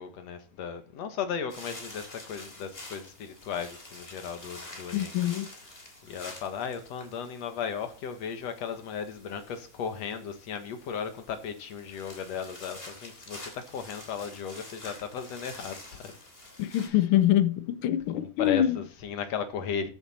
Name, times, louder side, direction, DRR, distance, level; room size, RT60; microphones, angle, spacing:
voice 1, 0.0-5.2 6.0-16.1 16.6-17.0 18.1-19.9, left 7 dB, 65° left, 2.5 m, -36 dB
sound 1, 1.5-16.9, left 1 dB, 20° left, 3.1 m, -47 dB
voice 2, 4.9-5.5 16.6-18.8, left 12 dB, 85° left, 1.1 m, -25 dB
14.0 x 7.6 x 4.3 m
omnidirectional pair, 3.4 m